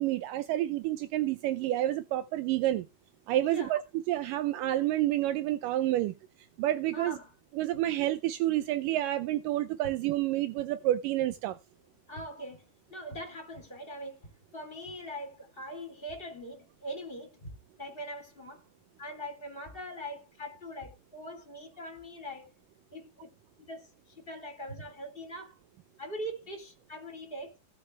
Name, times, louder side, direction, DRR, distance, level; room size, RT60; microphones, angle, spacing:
voice 1, 0.0-2.9 3.3-6.1 6.6-7.2 7.5-11.6, right 14 dB, 80° right, 1.9 m, -29 dB
voice 2, 3.4-3.8 6.9-7.3 7.7-7.8 12.1-18.6 19.0-22.5 22.9-23.3 23.6-25.6 26.0-27.6, equal, 15° left, 3.3 m, -42 dB
18.0 x 6.3 x 3.4 m
omnidirectional pair, 4.5 m